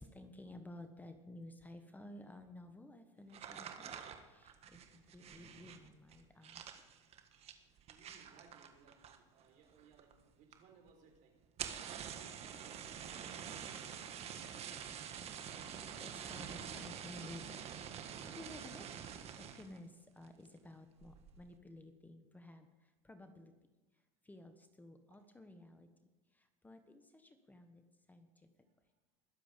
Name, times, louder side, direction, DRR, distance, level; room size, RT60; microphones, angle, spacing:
voice 1, 0.0-6.7 15.7-19.1 19.3-23.5 23.9-25.9 26.3-28.5, left 1 dB, 10° left, 7 dB, 1.2 m, -54 dB
sound 1, 3.3-9.4 9.7-10.2 10.5-10.6 10.9-11.0 11.4-19.8 20.2-20.6 21.0-21.4, right 8 dB, 40° right, 1.6 m, -47 dB
voice 2, 7.9-11.3 11.8-14.8, right 5 dB, 55° right, 3 dB, 4.2 m, -64 dB
21.0 x 7.6 x 5.2 m, 1.1 s
supercardioid pair, 100°, 16 cm